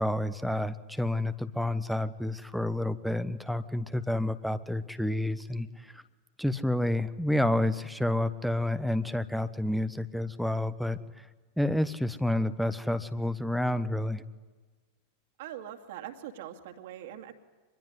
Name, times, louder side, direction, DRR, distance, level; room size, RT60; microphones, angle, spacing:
voice 1, 0.0-6.0 6.4-11.0 11.6-14.2, left 1 dB, ahead, 13 dB, 1.1 m, -29 dB
voice 2, 15.4-17.3, right 11 dB, 55° right, 4 dB, 2.4 m, -42 dB
25.5 x 21.5 x 9.7 m, 1.3 s
figure-of-eight pair, 90°, 0 cm